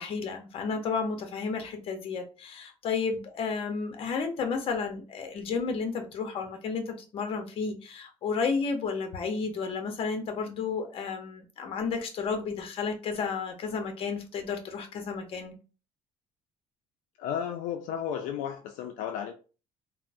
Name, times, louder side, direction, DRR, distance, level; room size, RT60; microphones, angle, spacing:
voice 1, 0.0-15.5, left 5 dB, 45° left, 0.7 m, -32 dB
voice 2, 17.2-19.3, left 8 dB, 75° left, 0.4 m, -33 dB
3.5 x 2.0 x 2.5 m
cardioid pair, 135°, 13 cm